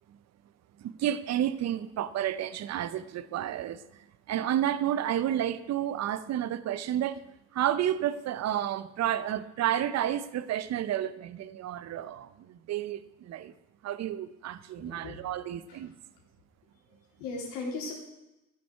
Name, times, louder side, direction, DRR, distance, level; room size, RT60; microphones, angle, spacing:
voice 1, 0.8-3.8 4.3-7.2 7.5-13.5 13.8-15.9, right 11 dB, 35° right, 15 dB, 0.7 m, -31 dB
voice 2, 14.8-15.3 15.7-15.9 16.9-17.9, left 3 dB, 75° left, -1 dB, 3.4 m, -38 dB
11.5 x 9.1 x 4.7 m, 0.94 s
hypercardioid pair, 80°, 50 cm